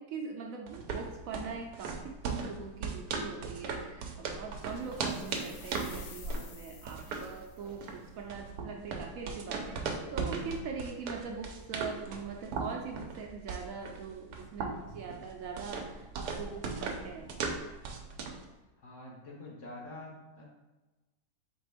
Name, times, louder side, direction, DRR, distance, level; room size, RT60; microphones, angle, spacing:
voice 1, 0.0-17.4, right 5 dB, 70° right, 1 dB, 0.9 m, -42 dB
sound 1, 0.7-18.5, right 4 dB, 90° right, 1.2 m, -38 dB
sound 2, 4.8-7.8, left 7 dB, 75° left, 1.0 m, -53 dB
voice 2, 18.8-20.4, left 2 dB, 55° left, -2 dB, 1.2 m, -46 dB
4.3 x 3.7 x 3.3 m, 1.1 s
omnidirectional pair, 1.7 m